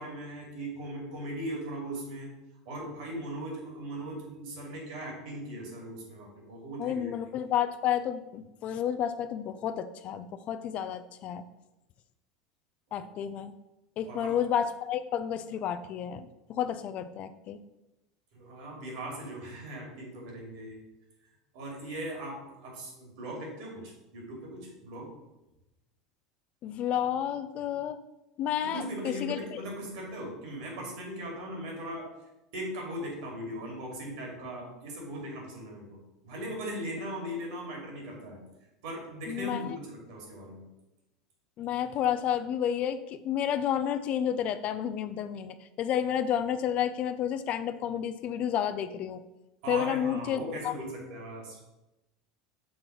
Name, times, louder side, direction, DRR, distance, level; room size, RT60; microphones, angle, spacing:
voice 1, 0.0-2.3 2.6-7.1 7.4-7.5 12.9-13.1 14.1-14.3 18.3-20.8 21.5-25.1 28.6-32.1 32.5-38.4 38.8-40.7 49.6-51.6, right 1 dB, 65° right, -1 dB, 2.7 m, -39 dB
voice 2, 6.8-11.4 12.9-13.5 14.0-17.6 26.6-28.0 28.4-29.6 39.3-39.8 41.6-49.2 49.7-50.7, left 9 dB, 45° left, 11 dB, 0.5 m, -31 dB
6.2 x 3.8 x 5.9 m, 0.97 s
hypercardioid pair, 80°, 3 cm